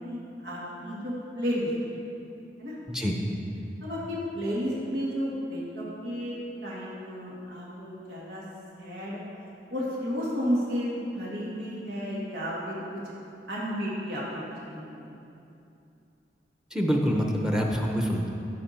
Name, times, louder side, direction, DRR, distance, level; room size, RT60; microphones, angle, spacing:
voice 1, 0.0-1.7 2.6-2.8 3.8-6.4 6.6-8.4 8.8-9.2 9.7-13.0 13.5-15.0, equal, 90° right, -7 dB, 2.1 m, -32 dB
voice 2, 2.9-3.2 16.7-18.3, equal, 5° right, 1 dB, 0.7 m, -26 dB
15.0 x 5.2 x 4.3 m, 2.8 s
head